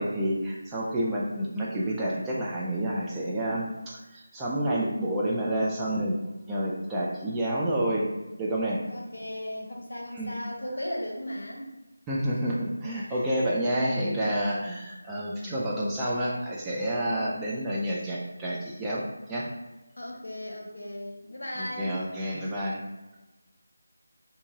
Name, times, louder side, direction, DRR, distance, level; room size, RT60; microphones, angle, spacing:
voice 1, 0.0-6.1 6.5-8.1 8.4-8.8 10.1-10.3 12.1-19.0 19.3-19.5 21.6-22.8, right 1 dB, 10° right, -6 dB, 0.3 m, -29 dB
voice 2, 8.9-11.7 12.4-12.7 13.1-13.3 20.0-22.0, left 1 dB, 65° left, -1 dB, 0.7 m, -37 dB
2.7 x 2.6 x 2.5 m, 1.1 s
figure-of-eight pair, 160°, 0 cm